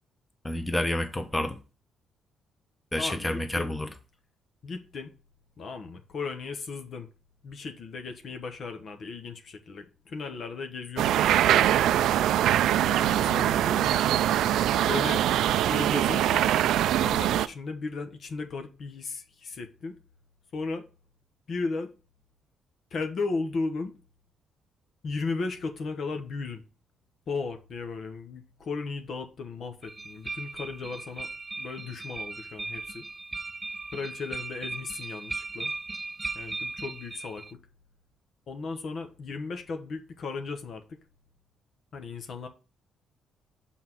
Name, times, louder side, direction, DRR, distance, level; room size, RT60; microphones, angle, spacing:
voice 1, 0.4-1.6 2.9-3.9, left 1 dB, 10° left, 1.1 m, -29 dB
voice 2, 3.0-3.7 4.6-5.1 5.6-7.1 7.4-11.9 12.9-14.0 14.8-15.2 15.7-16.5 17.0-19.9 20.5-20.8 21.5-21.9 22.9-23.9 25.0-26.6 27.3-31.3 31.6-33.0 33.9-35.7 36.3-37.4 38.5-40.8 41.9-42.5, left 4 dB, 55° left, 1.1 m, -35 dB
sound 1, 11.0-17.5, right 11 dB, 80° right, 0.3 m, -23 dB
sound 2, 29.8-37.5, right 3 dB, 20° right, 0.4 m, -37 dB
5.8 x 4.2 x 6.1 m
cardioid pair, 90°, 0 cm